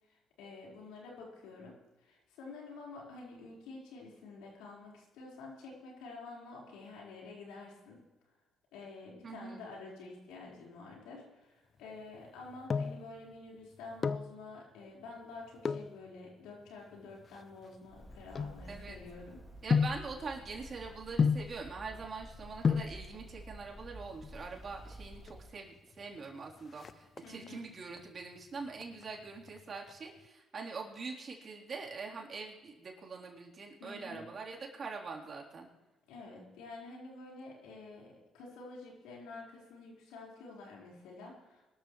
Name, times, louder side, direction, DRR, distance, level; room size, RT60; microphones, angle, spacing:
voice 1, 0.1-8.0 8.7-19.4 27.2-27.7 33.8-34.4 36.1-41.7, left 3 dB, 85° left, -3 dB, 4.6 m, -49 dB
voice 2, 9.2-9.6 18.7-19.0 19.6-35.7, right 4 dB, 45° right, -1 dB, 3.7 m, -44 dB
sound 1, 12.3-13.1 13.8-14.4 15.6-16.0 16.7-19.1 19.7-20.1 21.2-21.6 22.3-22.4 22.6-23.0 24.1-24.7 25.0-25.1 25.3-25.4 25.8-26.2 26.5-27.5 28.0-28.4 28.8-29.9 30.2-30.3, left 5 dB, 40° left, 0.5 m, -32 dB
Bird, 17.9-25.5, equal, 5° right, 2.8 m, -51 dB
23.0 x 13.0 x 3.2 m, 1.2 s
supercardioid pair, 75°, 0 cm